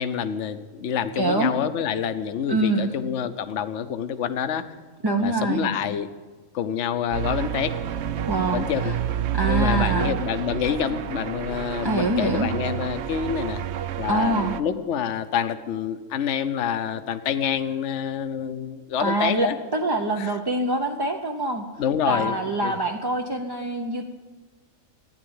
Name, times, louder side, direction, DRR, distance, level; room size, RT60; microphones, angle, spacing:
voice 1, 0.0-4.7 5.2-6.1 6.5-7.8 8.5-8.9 9.4-13.6 14.0-19.6 20.2-20.3 21.8-22.7, left 8 dB, 60° left, 11 dB, 1.1 m, -27 dB
voice 2, 1.2-1.5 2.5-2.9 5.0-5.7 8.3-9.0 9.3-10.2 11.8-12.5 14.1-14.6 19.0-21.6 22.0-24.1, right 2 dB, 25° right, 2 dB, 0.6 m, -25 dB
sound 1, 7.1-14.6, right 10 dB, 65° right, 0.8 m, -29 dB
15.0 x 10.5 x 8.7 m, 1.3 s
omnidirectional pair, 1.4 m